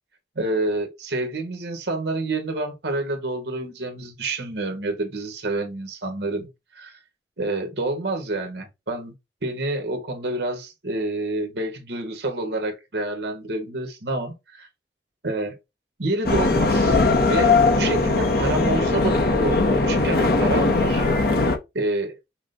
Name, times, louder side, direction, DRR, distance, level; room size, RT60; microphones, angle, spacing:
voice 1, 0.3-6.5 6.7-7.0 7.4-9.1 9.4-14.7 15.2-15.6 16.0-17.0 17.3-21.1 21.7-22.2, right 2 dB, 70° right, 1.3 m, -28 dB
sound 1, 16.2-21.6, left 3 dB, 55° left, 0.8 m, -19 dB
6.0 x 2.2 x 3.9 m
head